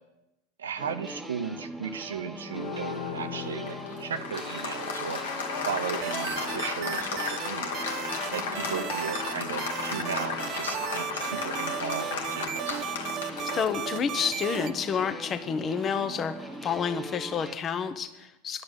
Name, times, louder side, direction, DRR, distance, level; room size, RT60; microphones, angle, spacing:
voice 1, 0.6-5.2 5.6-7.8 8.3-12.8, right 7 dB, 75° right, 10 dB, 0.7 m, -36 dB
sound 1, 0.8-17.6, right 1 dB, 5° right, 1.2 m, -41 dB
Applause, 2.5-16.8, left 5 dB, 70° left, 1.4 m, -35 dB
sound 2, 6.0-7.5 7.7-9.3 9.6-14.7, right 12 dB, 40° right, 0.4 m, -35 dB
voice 2, 13.5-18.6, left 6 dB, 30° left, 11 dB, 0.9 m, -29 dB
10.5 x 6.6 x 9.0 m, 0.95 s
figure-of-eight pair, 85°, 0 cm